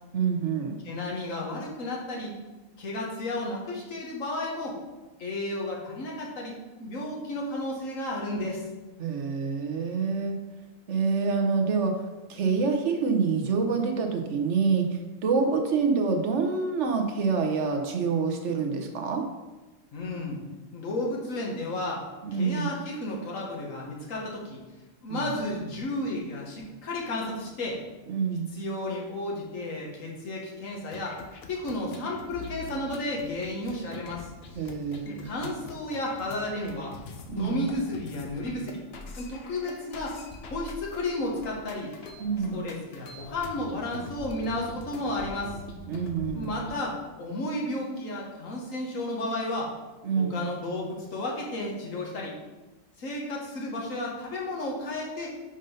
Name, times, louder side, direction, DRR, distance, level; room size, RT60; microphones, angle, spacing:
voice 1, 0.1-0.8 9.0-10.3 10.9-12.0 12.3-14.9 15.2-19.2 22.2-22.7 25.1-25.3 28.1-28.5 34.6-35.3 37.3-37.7 42.2-42.6 45.9-46.6 50.0-50.4, right 5 dB, 65° right, 4 dB, 1.2 m, -26 dB
voice 2, 0.8-2.3 2.8-4.8 5.2-6.5 6.8-8.6 19.9-20.4 20.7-22.1 22.3-24.6 25.0-27.8 28.5-31.2 31.5-34.3 35.0-37.0 37.3-38.8 39.2-40.2 40.5-41.9 42.5-45.6 46.3-49.7 50.2-52.4 53.0-55.4, left 1 dB, 80° left, -2 dB, 1.8 m, -33 dB
sound 1, 30.8-46.7, left 3 dB, 55° left, 1.0 m, -44 dB
5.3 x 5.3 x 5.4 m, 1.1 s
omnidirectional pair, 1.4 m